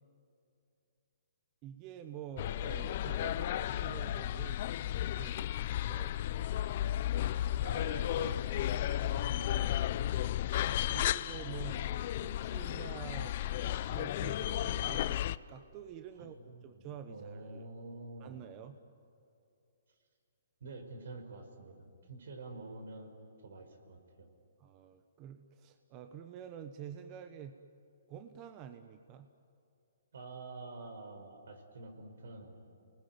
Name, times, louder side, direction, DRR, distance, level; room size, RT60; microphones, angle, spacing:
voice 1, 1.6-6.1 10.1-10.4 10.9-11.9 12.2-15.2 15.5-16.4 16.6-17.7 18.2-18.8 24.6-27.5 28.1-29.3, right 8 dB, 25° right, 8 dB, 1.1 m, -48 dB
sound 1, 2.4-15.4, left 12 dB, 45° left, 0.6 m, -34 dB
voice 2, 7.6-10.3 11.5-11.8 16.2-18.4 20.6-23.1 23.4-24.3 30.1-32.6, right 3 dB, 75° right, 5 dB, 5.1 m, -47 dB
29.5 x 20.0 x 9.5 m, 2.6 s
hypercardioid pair, 155°, 0 cm